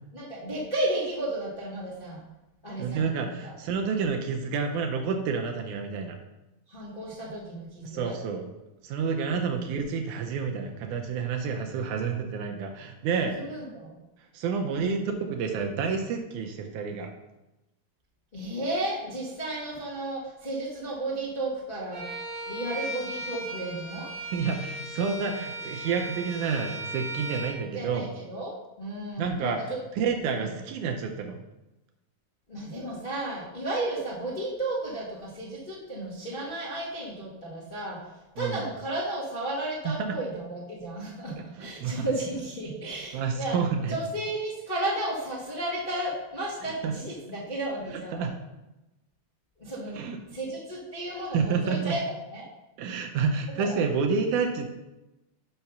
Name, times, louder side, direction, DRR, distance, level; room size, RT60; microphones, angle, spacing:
voice 1, 0.1-2.2 2.6-3.5 6.7-8.2 9.3-9.6 13.2-13.9 14.7-15.0 18.3-22.1 22.4-24.1 27.7-30.5 32.5-38.0 38.3-43.6 43.9-48.2 49.6-52.0 52.3-52.5 53.6-53.8, right 1 dB, 85° left, -8 dB, 0.4 m, -33 dB
voice 2, 2.8-6.2 7.9-8.4 8.8-13.4 14.3-17.1 24.3-28.1 29.2-29.6 30.0-31.4 38.4-38.6 39.9-40.2 41.6-42.0 43.1-43.9 46.8-46.9 48.2-48.4 50.0-50.2 51.3-51.9 52.8-54.7, right 5 dB, 80° right, 3 dB, 2.0 m, -29 dB
Bowed string instrument, 21.9-27.6, right 1 dB, 55° right, 1.4 m, -37 dB
5.8 x 5.7 x 5.4 m, 1.0 s
omnidirectional pair, 3.9 m